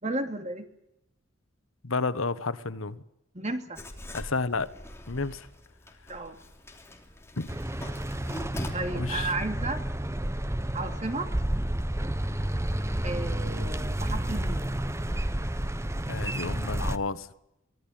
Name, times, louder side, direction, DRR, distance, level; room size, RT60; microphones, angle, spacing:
voice 1, 0.0-0.7 3.3-3.8 6.1-6.4 8.7-9.8 10.7-11.3 13.0-14.7, right 2 dB, 35° right, 2.7 m, -33 dB
voice 2, 1.8-3.0 4.1-4.7 5.1-5.5 7.4-7.5 8.9-9.3 16.1-17.3, left 3 dB, 85° left, 1.3 m, -31 dB
Writing, 3.8-8.7, left 1 dB, 15° left, 3.1 m, -42 dB
sound 1, 7.5-17.0, right 1 dB, 15° right, 0.9 m, -30 dB
24.5 x 17.0 x 8.9 m
head